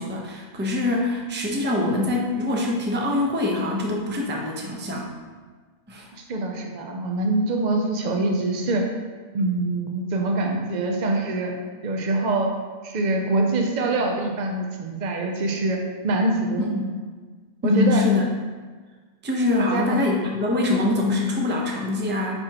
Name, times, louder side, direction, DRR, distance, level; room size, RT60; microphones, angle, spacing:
voice 1, 0.0-5.1 5.9-6.1 16.7-16.8 17.6-18.2 19.2-22.4, left 2 dB, 10° right, -1 dB, 0.6 m, -24 dB
voice 2, 6.1-8.9 9.3-11.6 11.8-12.5 12.8-16.7 17.6-18.0 19.6-20.0, right 2 dB, 65° right, 3 dB, 0.4 m, -24 dB
9.7 x 4.4 x 2.9 m, 1.5 s
omnidirectional pair, 1.5 m